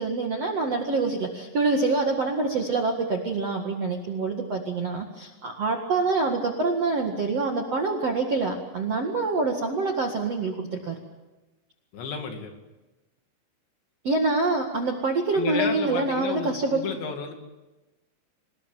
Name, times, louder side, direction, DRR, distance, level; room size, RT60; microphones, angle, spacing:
voice 1, 0.0-11.0 14.0-16.8, right 3 dB, 50° right, 2 dB, 1.9 m, -26 dB
voice 2, 11.9-12.5 15.3-17.3, left 6 dB, 65° left, 5 dB, 4.4 m, -32 dB
27.0 x 19.0 x 8.9 m, 1.1 s
omnidirectional pair, 5.7 m